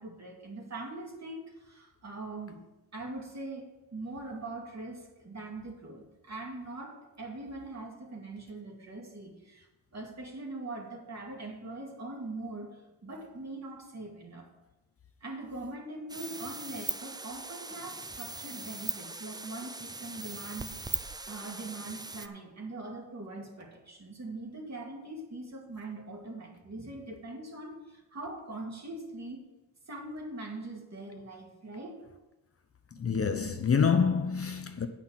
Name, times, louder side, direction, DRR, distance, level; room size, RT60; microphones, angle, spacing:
voice 1, 0.0-2.6 2.9-14.5 15.2-29.4 29.9-32.0 33.0-33.1, right 2 dB, 40° right, 2.5 m, -42 dB
sound 1, 16.1-22.3, right 2 dB, 10° right, 0.5 m, -40 dB
voice 2, 33.0-34.9, left 6 dB, 35° left, 0.7 m, -26 dB
9.4 x 5.8 x 7.3 m
cardioid pair, 105°, 39 cm